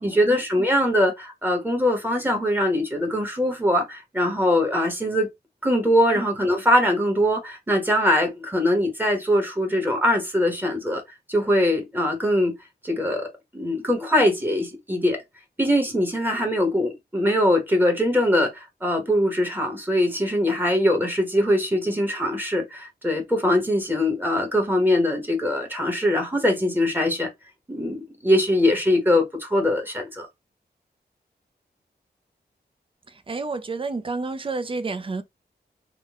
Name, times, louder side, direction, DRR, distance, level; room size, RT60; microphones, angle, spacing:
voice 1, 0.0-5.3 5.6-11.0 11.3-12.6 12.8-13.3 13.5-15.2 15.6-27.3 27.7-30.3, left 1 dB, 10° right, 1.2 m, -22 dB
voice 2, 33.3-35.2, right 3 dB, 30° right, 0.5 m, -29 dB
3.7 x 2.2 x 3.5 m
wide cardioid pair, 125°, 18 cm